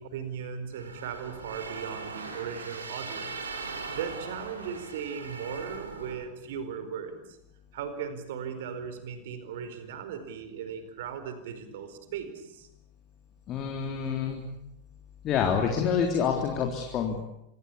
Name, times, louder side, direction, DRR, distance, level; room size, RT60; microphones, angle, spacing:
voice 1, 0.0-7.2 7.7-12.7, right 7 dB, 55° right, 10 dB, 4.6 m, -38 dB
sound 1, 0.7-6.1, right 4 dB, 75° right, 5.0 m, -40 dB
voice 2, 13.5-14.4 15.2-17.2, left 7 dB, 35° left, 3 dB, 3.6 m, -27 dB
26.5 x 24.0 x 8.6 m, 0.84 s
figure-of-eight pair, 90°, 0 cm